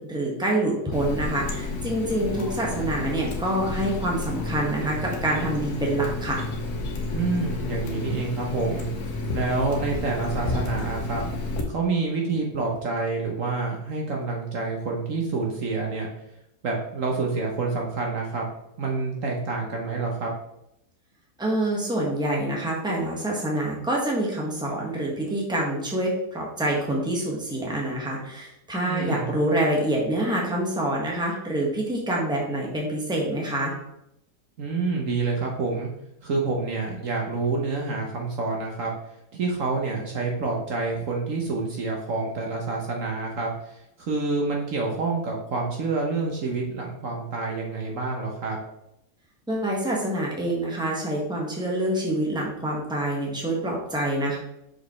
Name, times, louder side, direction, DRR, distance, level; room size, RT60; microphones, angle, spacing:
voice 1, 0.0-6.4 21.4-33.7 49.5-54.4, right 1 dB, 5° right, -3 dB, 1.3 m, -26 dB
Water tap faucet, 0.9-11.6, left 2 dB, 75° left, 1.4 m, -31 dB
voice 2, 7.1-8.9 9.3-11.3 11.7-16.1 16.6-18.4 18.8-20.3 28.8-29.3 34.6-35.9 36.2-38.9 39.3-48.6, right 3 dB, 60° right, 0 dB, 1.2 m, -28 dB
6.2 x 4.9 x 3.1 m, 0.81 s
omnidirectional pair, 1.7 m